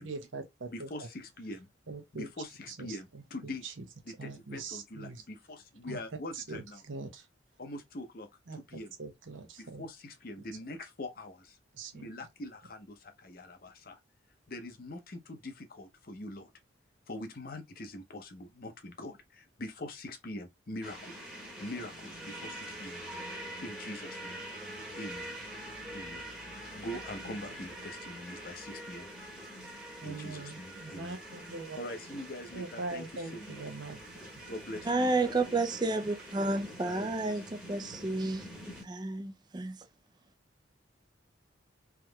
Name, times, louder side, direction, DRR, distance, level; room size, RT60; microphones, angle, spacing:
voice 1, 0.0-0.9 1.9-2.3 2.8-3.7 4.2-5.2 5.9-6.0 6.4-7.2 8.5-8.6 9.0-9.9 11.8-12.1 30.0-31.8 32.5-34.0, right 3 dB, 85° right, 0.8 m, -42 dB
voice 2, 0.7-1.7 2.1-3.6 4.0-6.8 7.6-8.9 9.6-11.6 11.9-14.0 14.5-16.5 17.1-21.2 21.6-23.0 23.3-24.4 24.9-25.3 25.9-26.3 26.8-29.1 30.0-31.2 31.8-33.6 34.5-35.6 36.8-37.4, left 1 dB, 50° left, 0.7 m, -43 dB
sound 1, 20.8-38.8, right 1 dB, 5° right, 1.0 m, -45 dB
voice 3, 34.9-38.4 38.8-39.8, right 2 dB, 20° right, 0.4 m, -31 dB
3.5 x 3.0 x 2.2 m
head